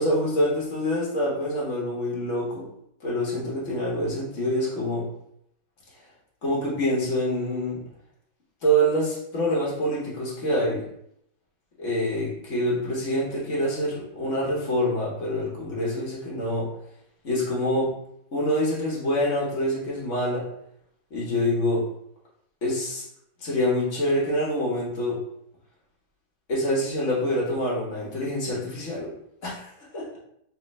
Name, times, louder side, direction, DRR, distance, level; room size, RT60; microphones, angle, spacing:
voice 1, 0.0-2.7 3.0-5.1 6.4-7.8 8.6-10.8 11.8-16.7 17.2-17.9 18.3-20.4 21.1-21.8 22.6-23.0 23.4-25.2 26.5-29.1 29.4-29.7 29.9-30.1, equal, 40° left, -4 dB, 1.4 m, -26 dB
3.9 x 3.8 x 3.1 m, 0.74 s
omnidirectional pair, 2.1 m